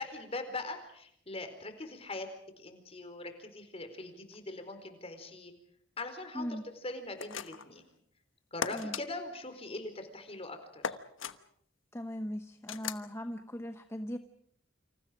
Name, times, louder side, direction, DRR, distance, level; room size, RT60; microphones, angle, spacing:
voice 1, 0.0-2.3 2.6-5.5 6.0-6.6 6.8-7.8 8.5-10.9, left 2 dB, 30° left, 7 dB, 4.4 m, -41 dB
voice 2, 6.3-6.7 8.7-9.0 11.9-14.2, equal, 15° left, 8 dB, 1.0 m, -39 dB
sound 1, 7.2-7.8 8.6-9.0 10.8-11.4 12.7-13.1, left 6 dB, 85° left, 1.2 m, -37 dB
29.0 x 27.0 x 5.1 m, 0.68 s
head